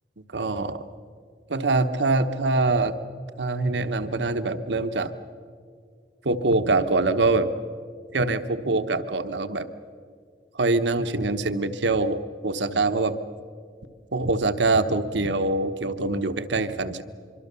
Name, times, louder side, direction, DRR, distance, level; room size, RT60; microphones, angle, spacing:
voice 1, 0.3-0.8 1.5-3.0 3.4-5.1 6.2-7.5 8.1-9.6 10.5-13.2 14.1-17.0, right 3 dB, 80° right, 10 dB, 1.1 m, -24 dB
24.5 x 24.5 x 6.9 m, 2.1 s
head